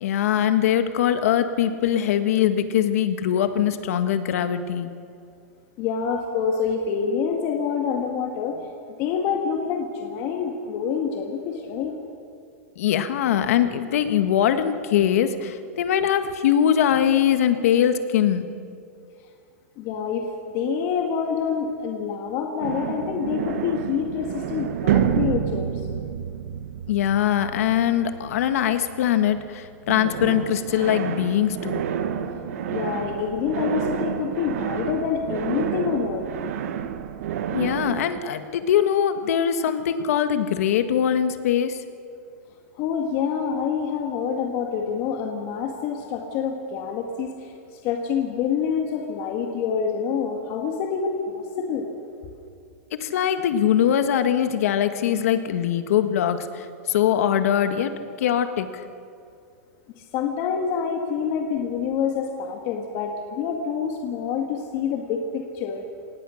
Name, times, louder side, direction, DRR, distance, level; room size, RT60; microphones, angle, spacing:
voice 1, 0.0-4.9 12.8-18.5 26.9-31.8 37.5-41.8 53.0-57.9 58.2-58.8, left 9 dB, 70° left, 9 dB, 1.6 m, -22 dB
voice 2, 5.8-8.6 9.0-11.9 19.8-25.7 32.7-36.3 42.7-47.5 47.8-51.9 60.0-65.9, left 6 dB, 40° left, 2 dB, 1.8 m, -27 dB
sound 1, 22.6-29.6 29.9-38.2, right 9 dB, 70° right, 1.3 m, -29 dB
26.0 x 18.5 x 6.5 m, 2.4 s
supercardioid pair, 155°, 8 cm